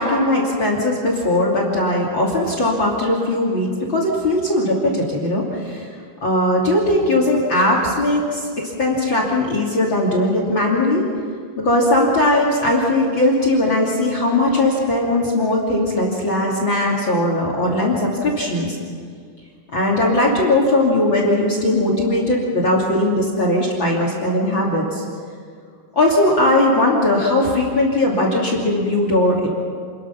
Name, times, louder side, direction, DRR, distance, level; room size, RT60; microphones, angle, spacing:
voice 1, 0.0-5.9 6.2-11.1 11.6-18.8 19.7-25.0 25.9-29.5, left 1 dB, 35° left, -1 dB, 3.3 m, -19 dB
29.0 x 21.0 x 6.0 m, 2.1 s
omnidirectional pair, 4.1 m